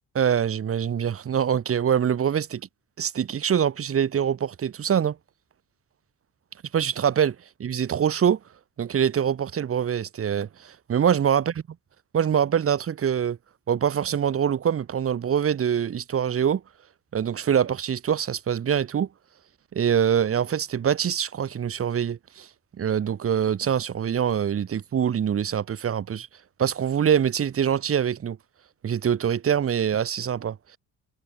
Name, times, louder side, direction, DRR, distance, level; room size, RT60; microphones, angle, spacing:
voice 1, 0.1-2.6 3.0-5.2 6.7-8.4 8.8-11.5 12.1-13.4 13.7-16.6 17.1-19.1 19.7-22.5 22.8-26.3 26.6-28.4 28.8-30.6, right 8 dB, 45° right, 7.6 m, -24 dB
cardioid pair, 150°, 31 cm